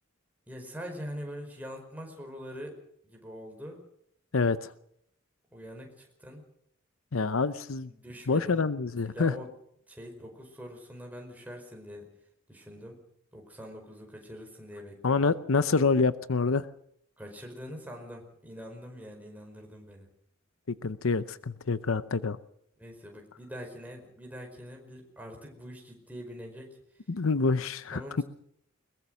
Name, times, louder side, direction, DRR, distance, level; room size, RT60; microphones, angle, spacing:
voice 1, 0.5-3.8 5.5-6.4 7.9-9.5 9.9-12.1 12.5-13.0 13.3-15.3 17.2-20.1 22.8-26.8 27.9-28.2, equal, 10° right, 1 dB, 4.9 m, -44 dB
voice 2, 4.3-4.7 7.1-7.9 8.3-9.3 15.0-16.7 20.8-22.4 27.1-28.2, left 4 dB, 80° left, 15 dB, 0.8 m, -27 dB
21.5 x 20.0 x 6.4 m, 0.72 s
head